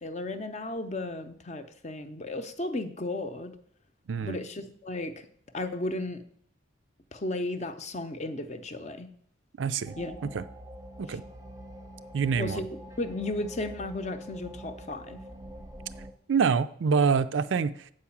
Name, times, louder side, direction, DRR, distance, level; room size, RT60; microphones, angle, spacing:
voice 1, 0.0-3.5 4.2-5.3 5.5-6.2 7.1-9.1 10.0-10.1 11.1-11.2 12.4-12.7 13.0-15.2, left 2 dB, 35° left, 9 dB, 0.6 m, -34 dB
voice 2, 9.6-10.0 10.2-10.4 11.0-11.2 12.1-12.6 16.3-17.9, right 6 dB, 65° right, 13 dB, 0.4 m, -26 dB
sound 1, 9.9-16.1, right 1 dB, 15° right, 0.6 m, -45 dB
7.7 x 4.8 x 7.2 m, 0.63 s
head